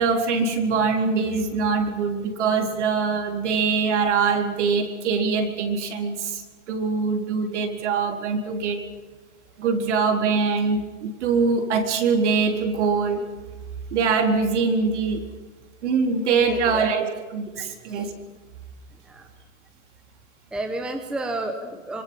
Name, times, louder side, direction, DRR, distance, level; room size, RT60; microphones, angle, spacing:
voice 1, 0.0-8.8 9.6-13.2 13.9-15.2 15.8-17.1 17.3-18.1, right 5 dB, 55° right, 3 dB, 4.1 m, -23 dB
voice 2, 16.4-16.9 17.5-18.1 19.0-19.3 20.5-22.0, right 2 dB, ahead, 4 dB, 1.0 m, -32 dB
26.0 x 24.5 x 5.7 m, 1.4 s
hypercardioid pair, 160°, 40 cm